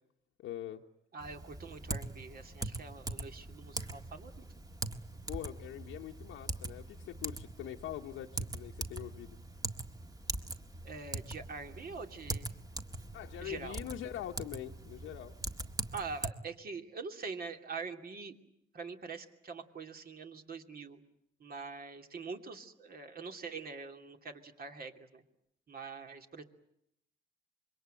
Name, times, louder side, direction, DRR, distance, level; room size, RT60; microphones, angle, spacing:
voice 1, 0.4-0.8 5.3-9.4 13.1-15.3, left 11 dB, 85° left, 2 dB, 1.2 m, -43 dB
voice 2, 1.1-4.4 10.8-12.5 13.4-13.8 15.9-18.3 18.7-21.0 21.4-25.2 25.7-26.4, right 4 dB, 50° right, 5 dB, 2.8 m, -44 dB
Typing, 1.2-16.3, right 2 dB, 20° right, 1.7 m, -42 dB
26.5 x 23.0 x 9.1 m, 0.77 s
cardioid pair, 90°, 20 cm